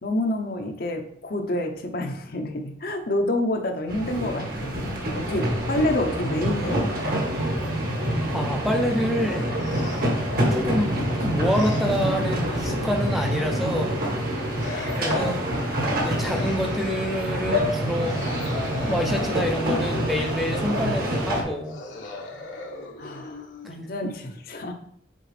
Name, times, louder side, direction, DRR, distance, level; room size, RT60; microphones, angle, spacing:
voice 1, 0.0-4.8 5.1-6.8 23.0-24.7, left 1 dB, 50° left, 5 dB, 0.7 m, -28 dB
sound 1, 3.9-21.4, equal, 55° right, 1.4 m, -26 dB
voice 2, 8.3-9.5 10.5-14.0 14.9-15.4 16.0-18.2 18.9-21.8, equal, ahead, 3 dB, 0.5 m, -27 dB
sound 2, 9.2-10.3 11.4-12.2 12.9-13.9 14.6-15.4 16.1-17.2 18.0-20.1 21.6-24.0, left 3 dB, 80° left, 1.2 m, -40 dB
7.7 x 4.2 x 3.3 m, 0.67 s
head